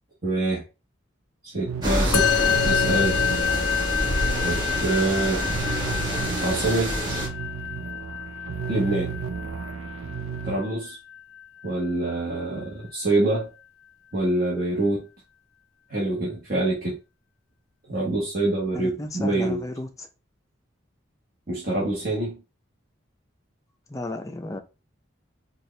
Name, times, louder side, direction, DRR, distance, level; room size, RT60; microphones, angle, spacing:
voice 1, 0.2-0.6 1.4-3.2 4.4-5.5 6.4-7.0 8.7-9.1 10.4-11.0 11.6-13.5 14.1-15.0 15.9-17.0 17.9-19.6 21.5-22.4, right 2 dB, 45° right, 1.2 m, -25 dB
sound 1, 1.7-10.6, right 5 dB, 90° right, 0.4 m, -34 dB
sound 2, 1.8-7.3, equal, 20° right, 1.5 m, -27 dB
Musical instrument, 2.1-11.7, left 9 dB, 85° left, 0.3 m, -28 dB
voice 2, 18.7-20.1 23.9-24.6, left 2 dB, 15° left, 0.5 m, -34 dB
4.4 x 2.4 x 3.2 m
head